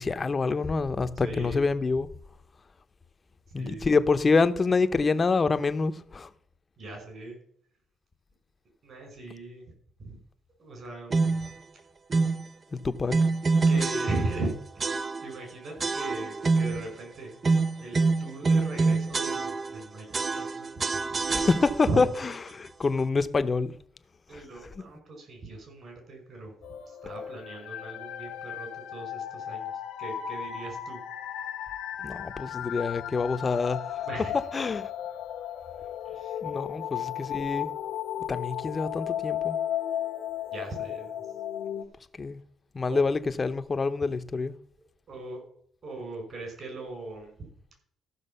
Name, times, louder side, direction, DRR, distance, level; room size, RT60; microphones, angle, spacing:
voice 1, 0.0-2.1 3.5-6.3 12.7-13.1 21.3-22.1 22.5-23.7 24.3-24.4 32.0-34.0 34.5-34.9 36.4-37.7 38.3-39.6 42.2-42.4 42.7-44.6, left 4 dB, 35° left, 0.8 m, -26 dB
voice 2, 1.2-1.7 3.5-3.9 6.8-7.4 8.8-9.6 10.0-10.2 10.6-11.5 13.7-17.4 17.8-20.8 21.9-22.0 24.3-26.5 26.9-29.7 30.0-31.0 34.0-34.4 36.0-36.4 36.7-36.8 40.5-41.3 42.9-43.0 45.1-45.4 45.8-47.5, right 2 dB, 55° right, 5.6 m, -38 dB
sound 1, 11.1-11.5 12.1-12.5 13.1-14.5 14.8-15.4 15.8-16.9 17.4-19.8 20.1-22.0, right 3 dB, 35° right, 0.6 m, -26 dB
sound 2, 26.6-41.8, left 10 dB, 85° left, 1.2 m, -35 dB
14.0 x 6.1 x 5.6 m
cardioid pair, 90°, 0 cm